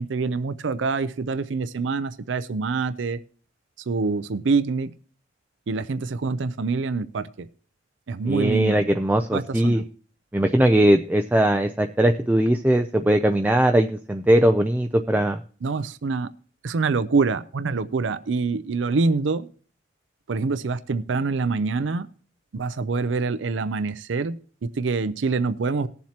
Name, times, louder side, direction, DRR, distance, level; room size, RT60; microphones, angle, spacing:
voice 1, 0.0-3.2 3.9-4.9 5.7-7.5 8.1-8.8 9.3-9.8 15.6-16.3 16.6-19.5 20.3-22.1 22.5-25.9, right 4 dB, 80° right, 13 dB, 0.5 m, -25 dB
voice 2, 8.3-9.8 10.3-15.4, right 1 dB, 10° right, 5 dB, 0.4 m, -20 dB
19.5 x 7.4 x 2.9 m, 0.42 s
head